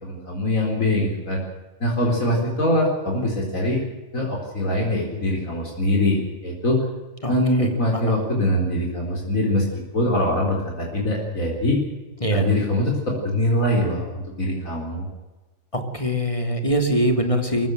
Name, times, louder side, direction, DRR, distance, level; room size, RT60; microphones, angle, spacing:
voice 1, 0.0-1.4 1.8-3.8 4.1-6.8 7.3-11.8 12.3-15.1, left 1 dB, 90° left, 0 dB, 4.7 m, -23 dB
voice 2, 7.6-8.2 12.2-12.5 15.7-17.7, equal, 25° left, 5 dB, 2.7 m, -23 dB
23.0 x 16.0 x 7.9 m, 1.2 s
omnidirectional pair, 1.4 m